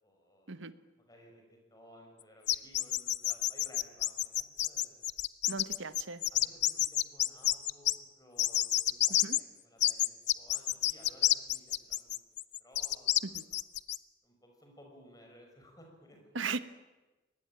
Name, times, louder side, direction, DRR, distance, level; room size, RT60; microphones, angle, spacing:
voice 1, 0.0-0.7 1.0-5.1 6.3-12.2 12.6-13.4 14.2-16.2, equal, 20° left, 2 dB, 6.1 m, -58 dB
sound 1, 2.5-7.9 8.4-9.4 9.8-14.0, left 13 dB, 60° left, 0.7 m, -29 dB
voice 2, 5.5-6.2 9.2-9.4 13.2-13.4 16.3-16.6, right 4 dB, 80° right, 12 dB, 1.2 m, -37 dB
24.0 x 19.5 x 8.9 m, 1.1 s
head